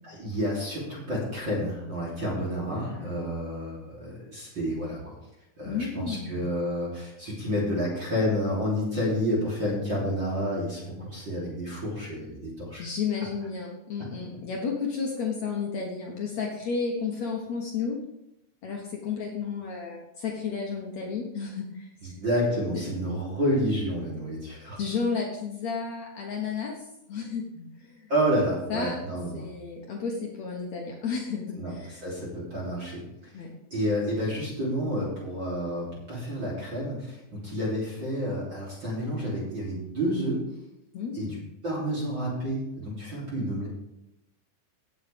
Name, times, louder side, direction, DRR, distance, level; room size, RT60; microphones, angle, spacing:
voice 1, 0.0-5.1 5.6-12.8 22.0-24.8 28.1-29.5 31.5-33.4 33.7-40.4 41.1-41.4 41.6-43.7, equal, 30° right, -5 dB, 3.1 m, -30 dB
voice 2, 2.7-3.1 5.7-6.5 12.8-18.0 18.6-22.1 22.9-23.0 24.8-28.1 28.7-28.9 29.3-32.0 33.3-33.6 40.9-41.4, left 5 dB, 80° left, -1 dB, 1.5 m, -32 dB
18.0 x 8.1 x 3.5 m, 0.87 s
omnidirectional pair, 5.2 m